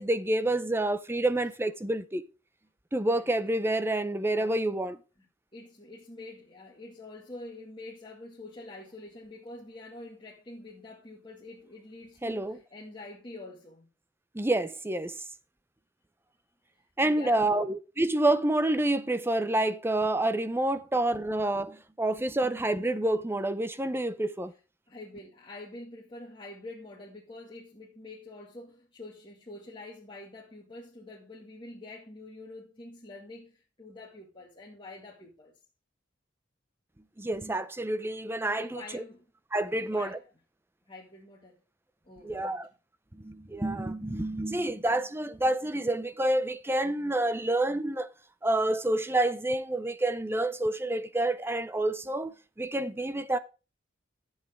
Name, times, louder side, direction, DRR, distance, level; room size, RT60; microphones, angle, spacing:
voice 1, 0.0-2.2 2.9-5.0 12.2-12.6 14.3-15.2 17.0-24.5 37.2-39.0 39.5-40.2 42.2-42.7 43.1-48.1 48.4-53.4, right 1 dB, 10° right, 0.6 m, -28 dB
voice 2, 5.5-13.9 17.0-17.7 20.7-20.9 24.9-35.5 38.6-39.2 39.7-40.2 40.9-41.6 42.0-42.7, left 2 dB, 25° left, 2.0 m, -46 dB
13.0 x 8.1 x 3.6 m
head